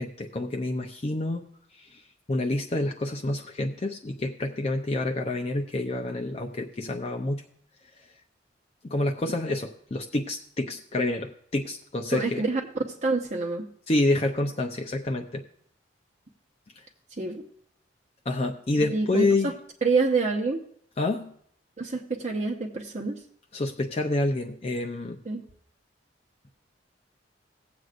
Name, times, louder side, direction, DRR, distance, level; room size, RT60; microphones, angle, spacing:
voice 1, 0.0-1.4 1.8-2.0 2.3-7.4 8.8-12.4 13.9-15.4 18.3-19.5 21.0-21.3 23.5-25.2, left 2 dB, 35° left, 3 dB, 0.6 m, -28 dB
voice 2, 12.1-12.6 13.0-13.7 17.2-17.4 18.8-19.5 19.8-20.7 21.8-23.2 25.2-25.4, right 3 dB, 40° right, 0 dB, 0.9 m, -27 dB
18.5 x 7.8 x 2.5 m, 0.64 s
head